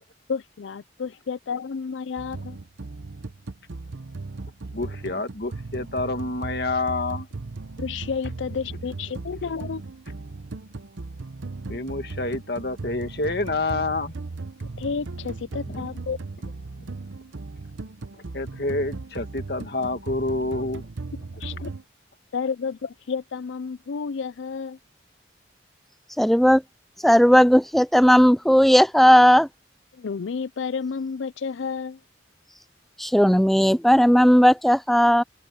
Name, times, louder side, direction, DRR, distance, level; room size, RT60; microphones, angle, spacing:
voice 1, 0.3-2.6 7.8-9.8 14.8-16.2 21.4-21.7 22.3-24.8 29.9-32.0, left 5 dB, 85° left, 0.5 m, -31 dB
sound 1, 2.2-21.8, right 3 dB, 85° right, 0.8 m, -37 dB
voice 2, 4.7-7.3 11.7-14.1 15.7-15.9 18.1-20.9, left 2 dB, 55° left, 1.9 m, -28 dB
voice 3, 26.2-26.6 27.0-29.5 33.0-35.2, equal, ahead, 0.3 m, -16 dB
head